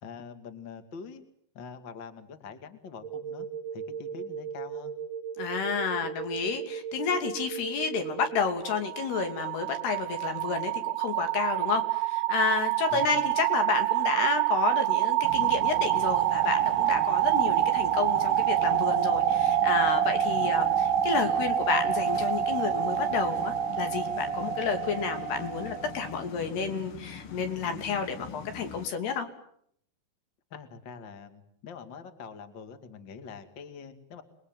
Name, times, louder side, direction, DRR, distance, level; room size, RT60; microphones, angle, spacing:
voice 1, 0.0-1.2 1.5-3.5 3.7-4.9 12.9-13.2 20.3-20.5 30.5-34.2, left 6 dB, 35° left, 8 dB, 2.4 m, -44 dB
sound 1, 3.0-8.5, right 7 dB, 65° right, 2.4 m, -37 dB
voice 2, 5.4-29.3, left 5 dB, 70° left, 6 dB, 4.9 m, -30 dB
sound 2, 8.3-26.1, right 12 dB, 85° right, 3.5 m, -27 dB
sound 3, 15.2-28.9, left 7 dB, 55° left, 1.6 m, -43 dB
29.0 x 22.0 x 9.4 m, 0.70 s
omnidirectional pair, 4.9 m